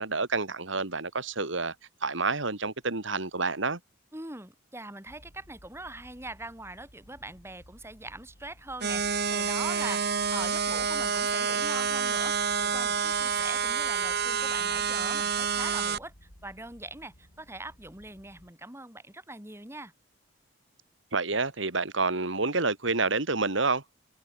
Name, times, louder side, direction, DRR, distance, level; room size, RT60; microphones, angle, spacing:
voice 1, 0.0-1.7 2.0-3.8 21.1-23.8, right 3 dB, 70° right, 2.5 m, -28 dB
voice 2, 4.1-10.0 10.3-19.9, right 2 dB, 10° right, 4.5 m, -42 dB
sound 1, 5.1-18.5, equal, 55° left, 7.8 m, -56 dB
sound 2, 8.8-16.0, right 6 dB, 55° right, 2.5 m, -28 dB
head